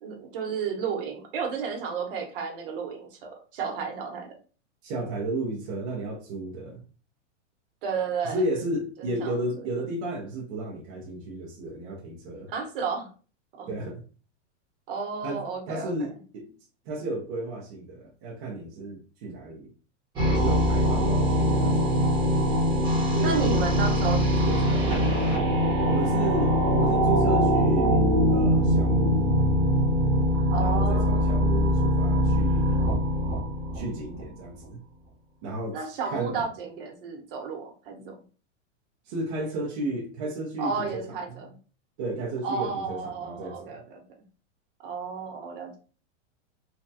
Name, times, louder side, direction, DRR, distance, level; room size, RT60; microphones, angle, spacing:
voice 1, 0.0-4.3 7.8-8.4 9.0-9.7 12.5-13.1 13.5-13.7 14.9-15.9 20.8-21.8 23.2-24.9 30.5-31.4 35.7-38.2 40.6-41.6 42.4-44.0 44.8-45.8, right 5 dB, 50° right, 0.9 m, -32 dB
voice 2, 4.8-6.8 8.2-12.5 13.7-14.0 15.2-16.5 16.9-19.7 20.3-22.3 23.1-23.4 24.4-24.7 25.8-28.0 28.3-29.4 30.6-32.8 33.7-34.8 35.4-35.9 36.1-36.4 39.0-41.1 42.0-43.8, right 2 dB, 30° right, 0.4 m, -33 dB
sound 1, 20.2-34.2, equal, 15° right, 0.8 m, -22 dB
3.2 x 2.2 x 2.6 m
supercardioid pair, 165°, 36 cm